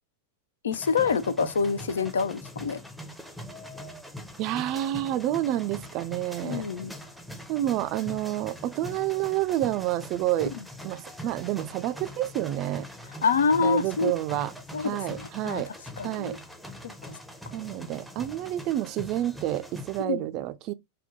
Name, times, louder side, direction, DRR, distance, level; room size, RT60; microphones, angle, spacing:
voice 1, 0.6-2.8 6.4-7.0 13.2-14.1 14.7-15.6 16.0-16.4 16.8-16.9 20.0-20.2, left 5 dB, 65° left, 0.4 m, -26 dB
sound 1, 0.7-20.0, left 1 dB, ahead, 0.6 m, -43 dB
voice 2, 4.4-6.7 7.5-10.5 10.8-12.9 13.6-14.5 14.8-15.7 16.0-16.4 17.5-20.7, right 14 dB, 40° right, 0.4 m, -29 dB
3.6 x 2.2 x 3.8 m
figure-of-eight pair, 90°, 0 cm